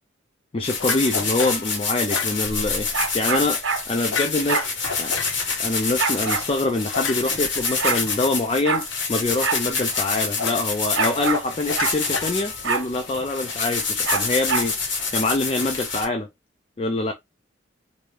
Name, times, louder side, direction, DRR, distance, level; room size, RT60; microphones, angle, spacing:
voice 1, 0.5-3.6 3.9-5.1 5.6-8.8 9.1-16.3 16.8-17.1, left 2 dB, 30° left, 0.4 m, -25 dB
sound 1, 0.6-16.0, left 4 dB, 70° left, 1.3 m, -27 dB
sound 2, 0.8-1.7 2.1-2.4 4.1-5.4 6.9-8.1 10.4-10.7 11.0-12.7, left 6 dB, 85° left, 0.6 m, -30 dB
sound 3, 2.9-3.8 4.5-4.7 6.0-6.5 7.3-7.4 7.6-8.0 8.6-8.8 9.4-9.6 9.9-10.0 10.9-11.4 11.8-12.0 12.6-12.9 14.0-14.7, right 5 dB, 85° right, 0.9 m, -25 dB
3.4 x 2.6 x 3.2 m
head